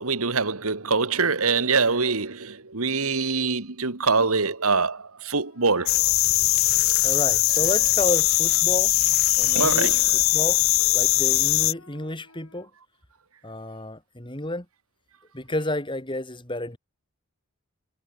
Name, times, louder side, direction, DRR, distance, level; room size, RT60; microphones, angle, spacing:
voice 1, 0.0-6.0 9.6-10.0, right 4 dB, 75° right, 1.9 m, -24 dB
Wind instrument woodwind instrument, 5.4-12.7, left 3 dB, 80° left, 7.3 m, -49 dB
sound 1, 5.9-11.7, left 18 dB, 60° left, 0.4 m, -21 dB
voice 2, 7.0-9.0 9.4-10.6 10.9-12.7 13.4-14.6 15.3-16.8, left 1 dB, 20° left, 3.2 m, -31 dB
head